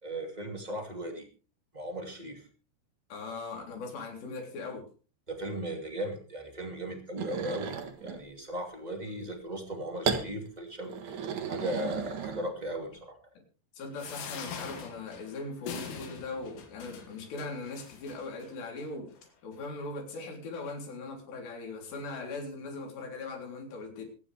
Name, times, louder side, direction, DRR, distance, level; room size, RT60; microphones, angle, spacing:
voice 1, 0.0-1.3 1.7-2.5 5.3-13.2, right 1 dB, 35° right, 2 dB, 0.6 m, -37 dB
voice 2, 3.1-4.9 13.8-19.1 19.4-24.1, left 3 dB, 60° left, 2 dB, 5.6 m, -40 dB
sound 1, 7.2-8.2 10.0-10.3 10.9-12.8, right 6 dB, 65° right, 1.9 m, -34 dB
sound 2, 14.0-18.5 19.2-19.3 19.5-19.6, left 6 dB, 80° left, 4.9 m, -43 dB
24.0 x 10.0 x 3.5 m, 0.36 s
omnidirectional pair, 5.6 m